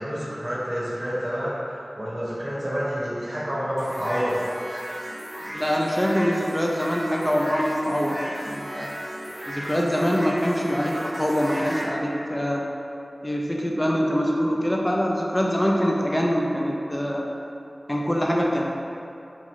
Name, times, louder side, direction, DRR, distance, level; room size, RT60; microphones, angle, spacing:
voice 1, 0.0-4.4, equal, 40° right, -11 dB, 1.3 m, -28 dB
sound 1, 3.8-11.9, equal, 15° right, 0.8 m, -35 dB
voice 2, 5.4-8.9 9.5-12.7 13.2-17.3 17.9-18.6, equal, 15° left, -2 dB, 0.5 m, -24 dB
3.8 x 3.6 x 3.1 m, 2.7 s
wide cardioid pair, 60°, 0 cm